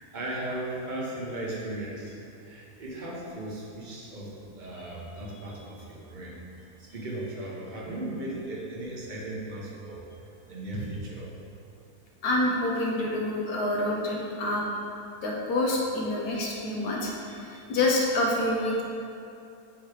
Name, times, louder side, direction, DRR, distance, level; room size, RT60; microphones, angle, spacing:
voice 1, 0.1-2.1 2.4-6.4 6.8-10.0 10.5-11.3, right 1 dB, 35° right, -4 dB, 0.9 m, -36 dB
voice 2, 12.2-14.7 15.2-18.8, left 1 dB, 75° left, -2 dB, 1.3 m, -27 dB
7.3 x 3.1 x 4.8 m, 2.6 s
omnidirectional pair, 1.7 m